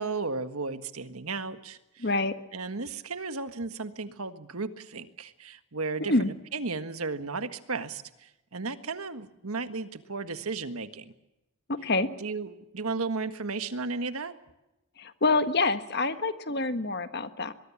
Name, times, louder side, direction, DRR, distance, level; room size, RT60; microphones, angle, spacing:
voice 1, 0.0-2.1 2.5-11.1 12.2-14.3, right 4 dB, 85° right, 10 dB, 1.6 m, -34 dB
voice 2, 2.0-2.3 6.0-6.3 11.7-12.1 15.0-17.5, left 2 dB, 50° left, 10 dB, 1.5 m, -26 dB
23.5 x 21.5 x 7.2 m, 0.93 s
head